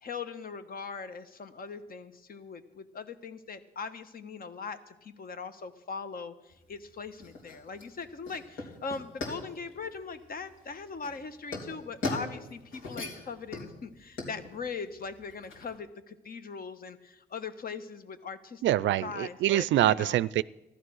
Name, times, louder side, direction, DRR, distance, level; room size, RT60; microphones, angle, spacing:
voice 1, 0.0-18.6 19.0-20.2, left 5 dB, 50° left, 1.2 m, -40 dB
sound 1, 6.5-15.8, left 2 dB, 75° left, 3.6 m, -40 dB
voice 2, 18.6-20.4, right 13 dB, 70° right, 0.4 m, -25 dB
14.5 x 12.0 x 6.3 m
cardioid pair, 90°, 20 cm